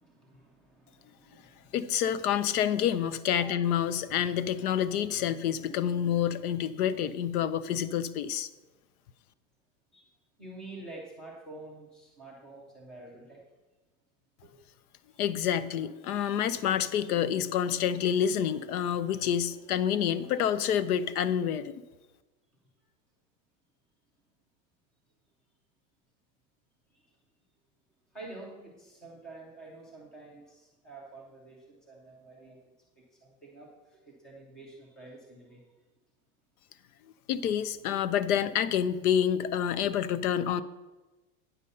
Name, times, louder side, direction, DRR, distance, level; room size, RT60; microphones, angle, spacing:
voice 1, 0.0-1.7 3.3-3.6 9.9-10.1 10.4-13.5 14.4-14.6 15.1-15.2 26.9-27.2 28.1-32.6 32.9-35.7, right 2 dB, ahead, -1 dB, 0.4 m, -48 dB
voice 2, 1.7-8.5 15.2-21.8 37.3-40.6, left 9 dB, 85° left, 16 dB, 0.7 m, -28 dB
8.9 x 5.4 x 6.6 m, 1.2 s
supercardioid pair, 175°, 43 cm